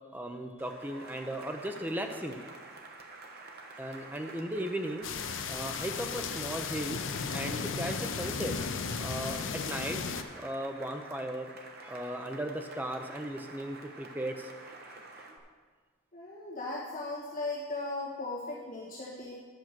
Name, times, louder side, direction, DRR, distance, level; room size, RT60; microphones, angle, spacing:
voice 1, 0.1-2.4 3.8-5.1 5.5-7.0 7.3-8.5 9.0-10.0 10.3-11.5 11.8-14.5, right 1 dB, 10° right, 4 dB, 0.6 m, -36 dB
Cheering / Applause, 0.6-15.4, right 3 dB, 50° right, 1.1 m, -49 dB
sound 1, 5.0-10.2, left 5 dB, 60° left, 0.6 m, -35 dB
voice 2, 16.1-19.3, left 2 dB, 40° left, -7 dB, 1.9 m, -37 dB
10.5 x 6.1 x 6.0 m, 1.5 s
head